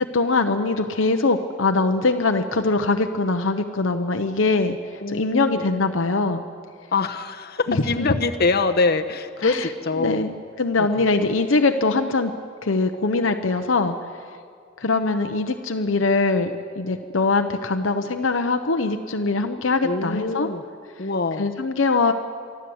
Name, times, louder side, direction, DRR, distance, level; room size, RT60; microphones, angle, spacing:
voice 1, 0.1-4.8 5.1-6.4 7.7-8.2 9.4-9.7 10.0-12.3 12.6-14.0 14.8-20.5 21.4-22.1, left 3 dB, 70° left, 6 dB, 0.9 m, -22 dB
voice 2, 5.0-5.6 6.9-10.2 10.8-10.9 19.8-20.6 21.0-21.5, left 3 dB, 55° left, 6 dB, 1.0 m, -24 dB
24.0 x 13.5 x 7.9 m, 2.1 s
head